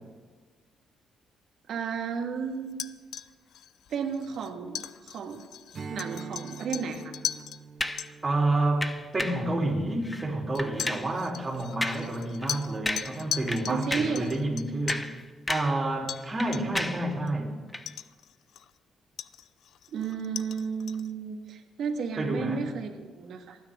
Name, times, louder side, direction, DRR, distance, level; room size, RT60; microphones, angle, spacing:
voice 1, 1.7-2.9 3.9-5.5 5.9-7.1 13.7-14.3 19.9-23.6, right 6 dB, 70° right, 1.8 m, -33 dB
sound 1, 2.7-7.6 8.0-8.1 9.1-9.2 10.5-15.1 16.1-16.3 16.5-16.9 17.3-17.4 17.9-18.8 19.2-21.1, left 10 dB, 70° left, 0.4 m, -39 dB
Strum, 5.7-10.5, right 5 dB, 50° right, 1.2 m, -45 dB
sound 2, 7.8-8.1 8.8-9.5 10.0-10.3 10.6-11.1 11.8-12.1 12.4-12.5 12.9-13.2 13.5-14.2 14.7-15.8 16.1-17.1 17.7-17.9, left 1 dB, 15° left, 0.9 m, -33 dB
voice 2, 8.2-15.1 15.5-17.6 22.2-22.7, right 2 dB, 25° right, 3.5 m, -29 dB
28.0 x 9.7 x 3.7 m
cardioid pair, 90°, 0 cm